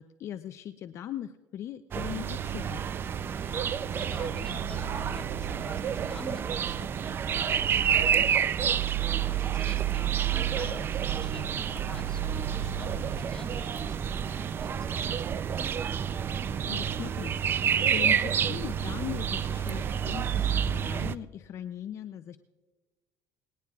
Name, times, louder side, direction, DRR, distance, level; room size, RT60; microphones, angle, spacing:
voice 1, 0.0-2.8 16.6-22.4, left 10 dB, 45° left, 11 dB, 0.5 m, -39 dB
sound 1, 1.9-21.1, right 8 dB, 35° right, 0.5 m, -29 dB
voice 2, 3.4-8.9 9.2-15.5, left 2 dB, 10° left, 0 dB, 2.4 m, -47 dB
20.0 x 18.5 x 2.4 m, 1.2 s
supercardioid pair, 110°, 6 cm